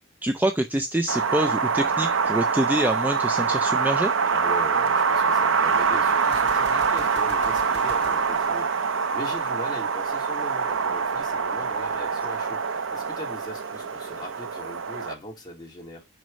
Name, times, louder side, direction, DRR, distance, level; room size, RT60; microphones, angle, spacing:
voice 1, 0.2-4.1, right 1 dB, 10° right, 0.4 m, -26 dB
Wind, 1.1-15.1, right 5 dB, 75° right, 0.7 m, -24 dB
voice 2, 4.3-16.0, left 1 dB, 20° left, 2.6 m, -40 dB
Gunshot gunfire, 6.2-9.3, left 2 dB, 55° left, 1.7 m, -45 dB
6.3 x 5.3 x 5.1 m
head